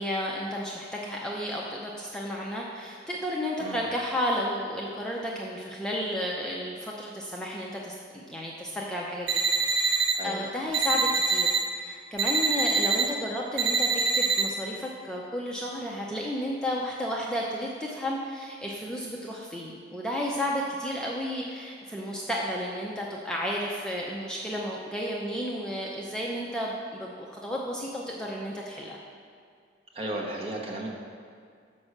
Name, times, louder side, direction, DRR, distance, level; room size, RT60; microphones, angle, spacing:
voice 1, 0.0-29.0, equal, 5° left, -3 dB, 0.5 m, -32 dB
sound 1, 9.3-10.1 10.7-11.6 12.2-13.0 13.6-14.4, right 4 dB, 85° right, 0.9 m, -24 dB
voice 2, 29.9-30.9, right 1 dB, 30° right, -1 dB, 1.0 m, -34 dB
6.0 x 5.3 x 6.5 m, 2.2 s
head